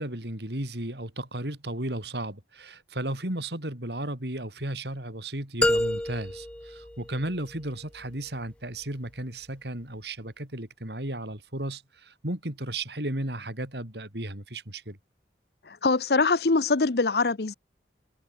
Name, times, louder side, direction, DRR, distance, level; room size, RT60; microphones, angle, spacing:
voice 1, 0.0-15.0, right 1 dB, 70° right, 4.8 m, -34 dB
sound 1, 5.6-7.7, left 1 dB, 5° left, 0.5 m, -28 dB
voice 2, 15.7-17.5, left 3 dB, 60° left, 0.8 m, -23 dB
head